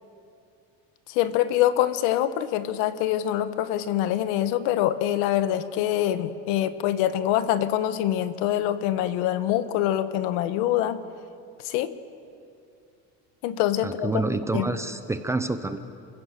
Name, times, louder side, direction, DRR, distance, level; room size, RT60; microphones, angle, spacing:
voice 1, 1.1-11.0 11.6-11.9 13.4-14.1 14.5-14.7, left 12 dB, 75° left, 12 dB, 1.2 m, -25 dB
voice 2, 13.8-15.8, right 3 dB, 10° right, 9 dB, 0.5 m, -28 dB
29.5 x 16.0 x 7.4 m, 2.6 s
cardioid pair, 170°, 34 cm